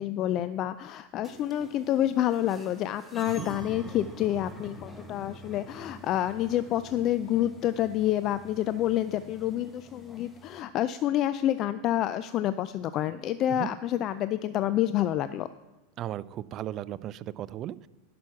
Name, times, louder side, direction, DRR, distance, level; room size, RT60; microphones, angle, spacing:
voice 1, 0.0-15.5, left 12 dB, 45° left, 13 dB, 0.4 m, -28 dB
sound 1, 1.2-10.6, left 1 dB, 10° left, 1.3 m, -46 dB
voice 2, 16.0-17.9, right 12 dB, 40° right, 18 dB, 0.4 m, -36 dB
11.0 x 6.0 x 5.9 m, 1.1 s
hypercardioid pair, 105°, 0 cm